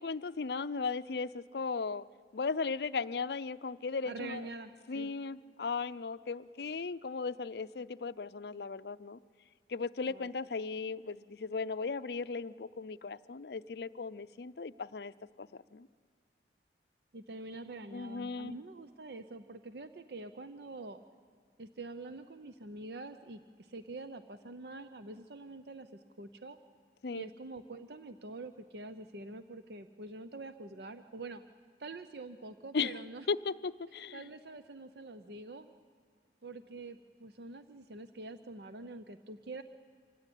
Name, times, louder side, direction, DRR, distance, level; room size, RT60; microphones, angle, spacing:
voice 1, 0.0-2.0 2.3-4.4 4.9-9.2 9.7-15.1 15.4-15.9 17.9-18.5 27.0-27.3 32.7-32.9 33.3-34.2, left 4 dB, 70° left, 14 dB, 0.5 m, -36 dB
voice 2, 4.0-5.1 10.1-10.3 17.1-21.0 21.6-26.6 27.1-31.4 31.8-33.3 34.1-35.7 36.4-39.6, right 2 dB, 70° right, 10 dB, 0.7 m, -46 dB
25.5 x 16.5 x 9.9 m, 2.1 s
head